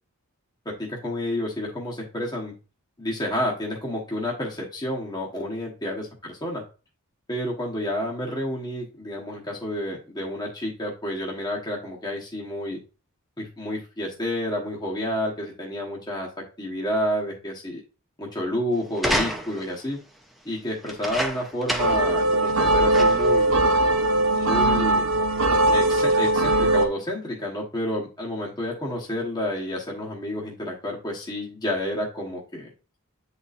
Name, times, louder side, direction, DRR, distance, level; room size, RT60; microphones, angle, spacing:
voice 1, 0.6-2.5 3.0-6.6 7.3-12.8 13.4-16.3 16.6-17.8 18.2-20.0 20.4-23.6 24.4-25.0 25.7-32.7, left 1 dB, 20° left, -3 dB, 1.1 m, -30 dB
sound 1, 18.9-19.8 20.8-22.1 22.5-22.6 22.9-23.4 24.1-24.2, equal, ahead, 0.6 m, -28 dB
sound 2, 21.8-26.9, right 1 dB, 60° right, 0.8 m, -20 dB
9.1 x 4.1 x 2.5 m, 0.34 s
head